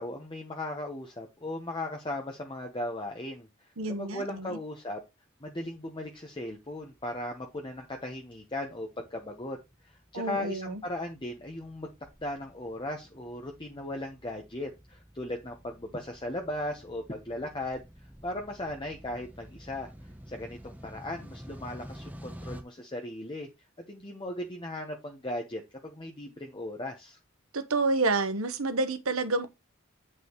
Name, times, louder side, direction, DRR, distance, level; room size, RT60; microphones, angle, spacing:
voice 1, 0.0-3.5 3.9-5.0 5.4-9.6 9.8-11.9 12.2-17.8 18.2-19.9 20.3-23.5 23.9-27.2, left 1 dB, 25° left, 1.0 m, -37 dB
voice 2, 3.8-4.6 10.1-10.8 27.5-29.5, right 3 dB, 90° right, 1.2 m, -29 dB
sound 1, 5.6-22.6, equal, 10° right, 1.0 m, -50 dB
8.6 x 5.5 x 3.1 m
head